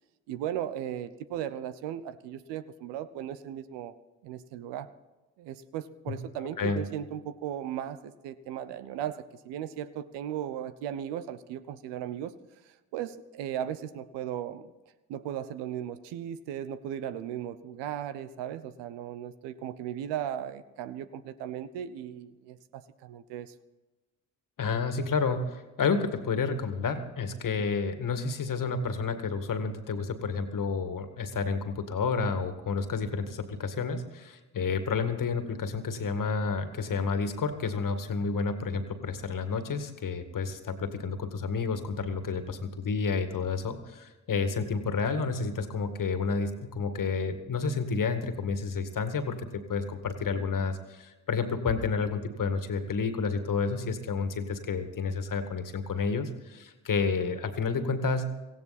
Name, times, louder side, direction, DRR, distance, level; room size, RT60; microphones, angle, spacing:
voice 1, 0.3-3.9 4.2-4.9 5.4-12.3 12.6-14.7 15.1-23.5, right 10 dB, 70° right, 13 dB, 0.9 m, -37 dB
voice 2, 24.6-58.2, left 4 dB, 45° left, 8 dB, 2.0 m, -30 dB
17.5 x 15.5 x 4.2 m, 1.1 s
hypercardioid pair, 50°, 43 cm